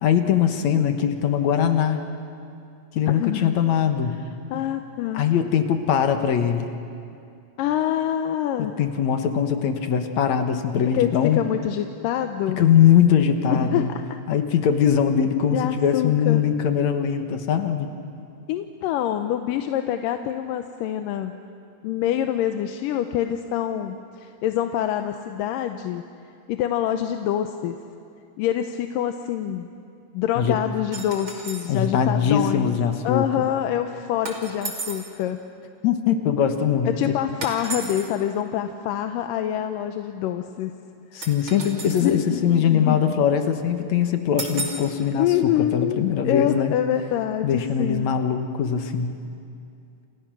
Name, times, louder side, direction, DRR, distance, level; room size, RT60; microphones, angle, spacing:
voice 1, 0.0-2.0 2.9-4.1 5.1-6.7 8.6-11.4 12.6-13.9 14.3-17.9 30.4-30.6 31.7-33.3 35.8-36.9 41.1-45.3 45.6-46.7 47.4-49.1, left 8 dB, 65° left, 7 dB, 2.4 m, -21 dB
voice 2, 3.1-3.6 4.5-5.3 7.6-8.7 10.9-12.6 13.5-13.9 15.5-16.4 18.5-21.3 21.8-26.0 26.5-27.8 28.4-29.7 30.1-32.7 33.0-35.4 36.9-40.7 42.0-43.0 45.1-48.1, left 11 dB, 80° left, 7 dB, 2.4 m, -26 dB
sound 1, 30.9-31.7 34.3-35.1 37.4-38.1 41.2-42.2 44.4-44.9, right 3 dB, 40° right, 3.5 m, -33 dB
30.0 x 28.5 x 6.2 m, 2.5 s
omnidirectional pair, 3.9 m